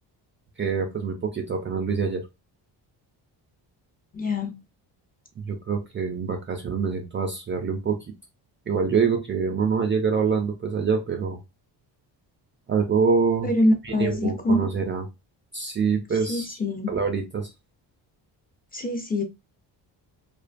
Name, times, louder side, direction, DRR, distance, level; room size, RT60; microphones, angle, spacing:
voice 1, 0.6-2.2 5.4-8.0 8.7-11.4 12.7-13.5 13.8-15.1 15.5-16.6 16.9-17.5, right 5 dB, 30° right, 0.3 m, -25 dB
voice 2, 4.1-4.6 13.4-14.7 16.3-16.9 18.7-19.2, left 1 dB, 20° left, 0.6 m, -24 dB
2.5 x 2.2 x 2.5 m
cardioid pair, 110°, 43 cm